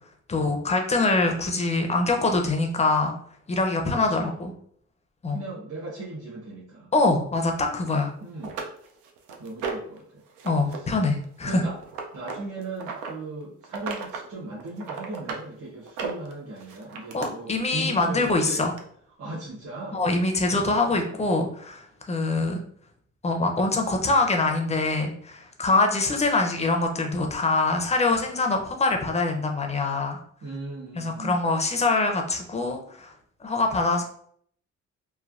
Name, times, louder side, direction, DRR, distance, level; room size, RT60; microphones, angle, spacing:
voice 1, 0.3-3.1 3.5-4.5 5.2-5.4 6.9-8.1 10.4-11.6 17.1-18.7 19.9-22.6 23.2-30.2 31.0-33.1 33.4-34.0, left 3 dB, 20° left, 3 dB, 0.5 m, -24 dB
voice 2, 3.8-4.4 5.3-6.9 8.2-8.6 9.4-10.2 10.6-11.0 11.4-11.8 12.1-18.7 19.2-20.0 20.6-21.2 30.4-31.5, right 2 dB, 50° right, -6 dB, 1.0 m, -38 dB
sound 1, 7.9-8.0 8.4-10.0 10.4-10.8 11.0-13.1 13.6-14.3 14.6-15.4 15.8-17.3 18.2-18.3 18.8-18.9, right 5 dB, 90° right, 0.5 m, -35 dB
3.2 x 2.1 x 2.4 m, 0.63 s
cardioid pair, 90°, 30 cm